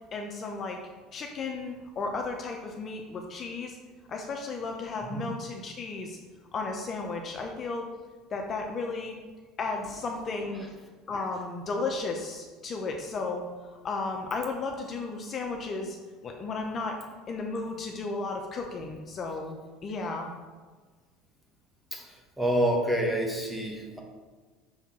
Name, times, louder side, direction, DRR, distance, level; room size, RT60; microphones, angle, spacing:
voice 1, 0.1-0.8 1.1-3.8 4.1-6.2 6.5-7.8 8.3-9.1 9.6-10.7 11.1-13.4 13.8-16.0 16.2-17.0 17.3-20.3, left 3 dB, 35° left, 2 dB, 0.8 m, -34 dB
voice 2, 22.4-24.0, right 1 dB, 5° right, 0 dB, 1.4 m, -27 dB
6.5 x 3.5 x 5.9 m, 1.4 s
supercardioid pair, 115°, 0 cm